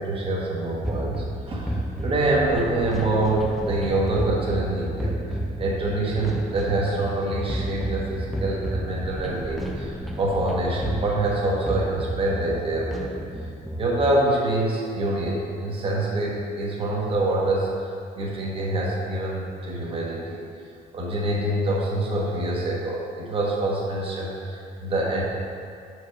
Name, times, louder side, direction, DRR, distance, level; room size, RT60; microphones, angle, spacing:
voice 1, 0.0-1.7 2.0-13.0 13.8-20.4 20.9-25.2, right 2 dB, 35° right, -4 dB, 1.3 m, -26 dB
sound 1, 0.8-14.1, equal, ahead, 0.6 m, -31 dB
6.1 x 4.8 x 4.8 m, 2.3 s
cardioid pair, 110°, 17 cm